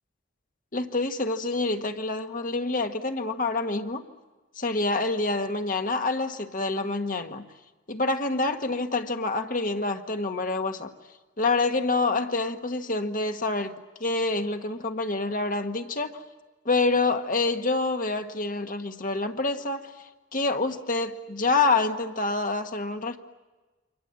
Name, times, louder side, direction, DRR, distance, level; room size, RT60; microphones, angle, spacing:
voice 1, 0.7-4.0 4.5-7.5 7.9-10.9 11.4-16.2 16.6-23.2, left 3 dB, 45° left, 6 dB, 1.5 m, -27 dB
28.5 x 24.5 x 7.8 m, 1.2 s
head